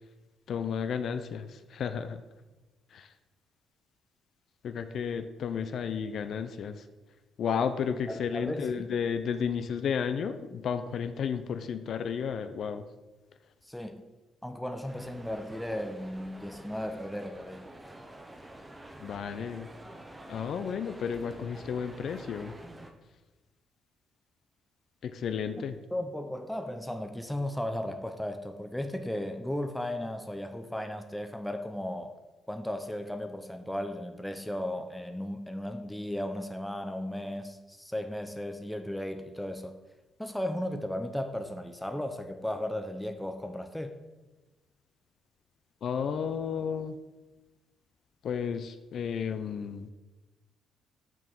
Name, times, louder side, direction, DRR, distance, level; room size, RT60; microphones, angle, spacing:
voice 1, 0.5-2.2 2.9-3.1 4.6-6.8 7.4-12.8 19.0-19.7 20.3-22.5 25.0-25.7 45.8-47.0 48.2-49.9, left 7 dB, 65° left, 9 dB, 0.4 m, -32 dB
voice 2, 8.1-8.9 13.7-14.0 14.4-17.7 25.6-25.7 25.9-32.2 32.5-39.8 40.2-44.0, left 1 dB, 5° left, 7 dB, 0.5 m, -35 dB
sound 1, 14.9-22.9, right 1 dB, 10° right, 0.8 m, -48 dB
5.9 x 4.7 x 5.3 m, 1.1 s
cardioid pair, 90°, 0 cm